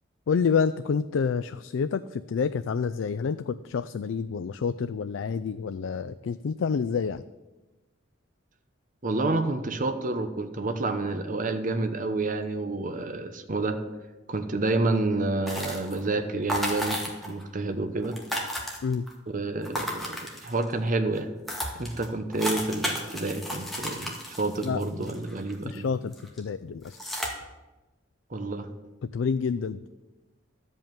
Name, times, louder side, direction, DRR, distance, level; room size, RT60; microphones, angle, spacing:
voice 1, 0.3-7.2 18.8-19.0 24.6-24.8 25.6-27.0 29.0-29.8, left 6 dB, 85° left, 12 dB, 0.4 m, -28 dB
voice 2, 9.0-13.8 14.3-17.0 17.2-18.2 19.3-21.3 21.7-25.9 28.3-28.7, right 2 dB, 45° right, 7 dB, 0.9 m, -29 dB
sound 1, 15.5-16.1 16.5-17.4 17.7-17.8 18.0-19.1 19.6-20.7 21.2-21.3 21.5-25.8 26.1-26.4 26.9-27.3, equal, ahead, 2.0 m, -33 dB
12.5 x 5.5 x 8.9 m, 1.1 s
head